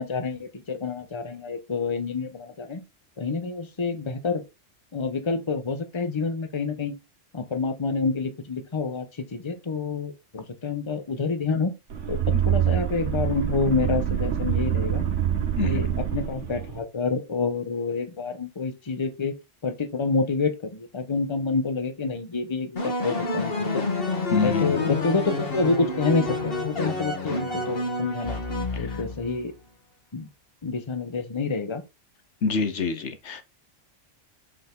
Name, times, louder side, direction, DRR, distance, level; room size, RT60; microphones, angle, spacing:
voice 1, 0.0-2.8 3.2-4.4 4.9-7.0 7.3-11.7 12.1-15.0 15.6-19.4 19.6-23.9 24.3-28.4 28.8-29.5 30.1-30.3 30.6-31.8, left 4 dB, 25° left, 1.0 m, -28 dB
sound 1, 11.9-16.8, right 10 dB, 75° right, 1.4 m, -25 dB
voice 2, 15.6-15.9 24.3-24.9 28.7-29.0 32.4-33.4, left 5 dB, 70° left, 1.2 m, -27 dB
sound 2, 22.8-29.4, left 3 dB, 50° left, 1.8 m, -28 dB
5.9 x 4.9 x 3.8 m
omnidirectional pair, 1.3 m